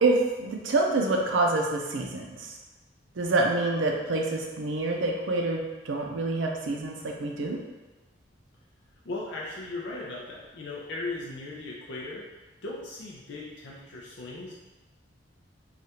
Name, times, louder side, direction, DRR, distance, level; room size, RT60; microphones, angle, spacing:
voice 1, 0.0-2.6 3.2-7.6, right 2 dB, 80° right, 1 dB, 0.5 m, -27 dB
voice 2, 9.0-12.2 12.6-14.5, left 2 dB, 65° left, -4 dB, 0.5 m, -37 dB
3.2 x 2.4 x 2.8 m, 1.2 s
head